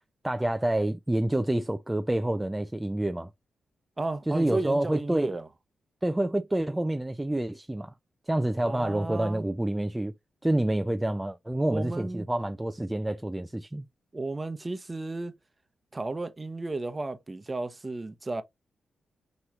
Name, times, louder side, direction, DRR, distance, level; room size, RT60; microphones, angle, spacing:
voice 1, 0.2-3.3 4.3-5.4 6.0-7.9 8.3-10.1 10.4-13.9, right 1 dB, 15° right, 0.4 m, -28 dB
voice 2, 4.0-5.5 8.6-9.4 11.7-12.3 14.1-15.3 15.9-18.4, right 2 dB, 30° right, 0.8 m, -33 dB
5.8 x 3.1 x 2.4 m
cardioid pair, 55°, 0 cm